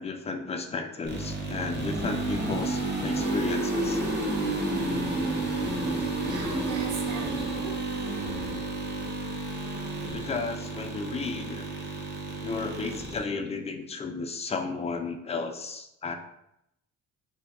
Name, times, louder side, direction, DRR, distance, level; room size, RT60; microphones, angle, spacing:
voice 1, 0.0-4.0 10.1-11.7 12.4-16.1, left 4 dB, 20° left, 5 dB, 0.4 m, -33 dB
sound 1, 1.0-13.2, right 2 dB, 35° right, 0.8 m, -31 dB
voice 2, 6.2-7.7 8.0-8.7, right 6 dB, 70° right, 2 dB, 0.7 m, -40 dB
2.7 x 2.2 x 3.4 m, 0.81 s
cardioid pair, 90°, 32 cm